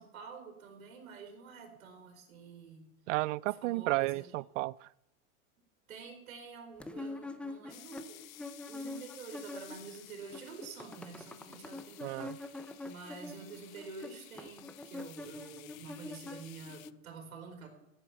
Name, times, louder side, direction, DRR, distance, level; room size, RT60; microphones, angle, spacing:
voice 1, 0.0-2.8 3.5-4.3 5.9-8.3 8.6-17.7, right 5 dB, 85° right, 4.0 m, -48 dB
voice 2, 3.1-4.9 12.0-12.4, right 19 dB, 65° right, 0.5 m, -33 dB
sound 1, 6.8-10.0 10.2-16.9, left 2 dB, 5° left, 0.6 m, -45 dB
sound 2, 7.7-16.9, left 16 dB, 80° left, 0.7 m, -55 dB
14.5 x 8.8 x 7.0 m
supercardioid pair, 135°, 40 cm